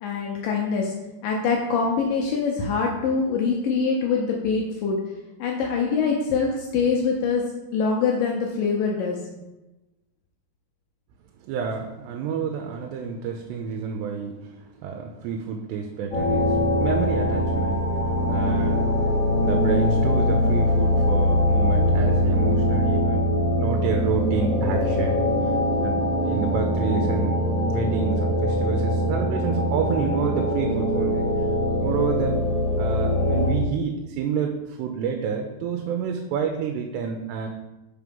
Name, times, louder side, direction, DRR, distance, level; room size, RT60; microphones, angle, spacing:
voice 1, 0.0-0.9 1.2-5.0 5.4-7.4 7.7-9.2, left 5 dB, 80° left, -1 dB, 2.0 m, -24 dB
voice 2, 11.5-27.4 27.7-31.3 31.8-32.4 32.8-37.5, right 6 dB, 90° right, 4 dB, 2.7 m, -29 dB
sound 1, 16.1-33.5, left 1 dB, 50° left, 0.9 m, -22 dB
5.4 x 4.7 x 5.2 m, 1.0 s
omnidirectional pair, 4.7 m